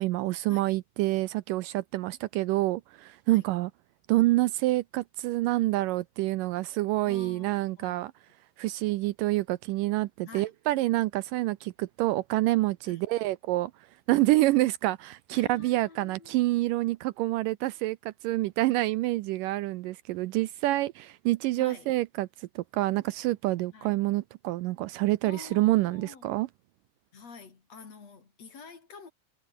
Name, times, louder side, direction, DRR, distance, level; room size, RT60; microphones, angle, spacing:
voice 1, 0.0-3.7 4.1-8.1 8.6-26.5, right 18 dB, 80° right, 2.1 m, -27 dB
voice 2, 7.1-8.1 10.2-10.5 12.9-13.0 15.3-16.4 21.6-21.9 23.7-24.0 25.2-26.3 27.1-29.1, left 5 dB, 45° left, 4.6 m, -48 dB
omnidirectional pair, 4.1 m